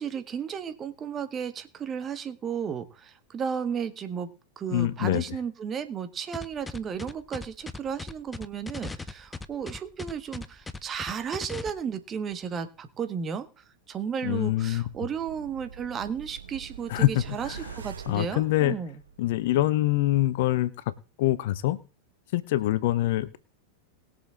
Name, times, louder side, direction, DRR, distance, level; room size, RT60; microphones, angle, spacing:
voice 1, 0.0-4.3 4.6-19.0, right 7 dB, 25° right, 10 dB, 1.5 m, -34 dB
voice 2, 4.7-5.2 14.2-14.8 16.9-17.1 17.5-17.6 18.1-18.8 19.2-20.9 21.2-21.8 22.3-23.4, left 15 dB, 55° left, 17 dB, 0.8 m, -25 dB
sound 1, 6.3-11.7, left 3 dB, 10° left, 0.7 m, -38 dB
sound 2, 14.1-19.4 19.7-19.8, right 6 dB, 70° right, 1.3 m, -44 dB
20.5 x 7.0 x 3.8 m, 0.33 s
figure-of-eight pair, 90°, 0 cm